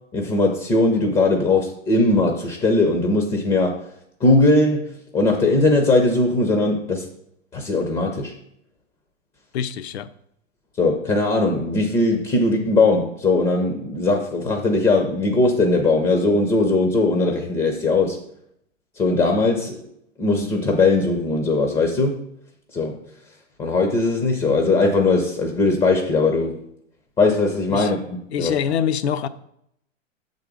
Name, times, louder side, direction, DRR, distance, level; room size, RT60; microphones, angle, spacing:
voice 1, 0.1-3.8 4.2-7.1 7.5-8.3 10.8-18.2 19.0-19.8 20.2-22.2 22.7-23.0 23.6-26.6 27.2-28.5, left 2 dB, 10° left, 3 dB, 0.5 m, -19 dB
voice 2, 9.5-10.1 27.7-27.9 28.3-29.3, left 8 dB, 60° left, 13 dB, 0.5 m, -24 dB
6.6 x 4.0 x 4.8 m, 0.73 s
hypercardioid pair, 115°, 38 cm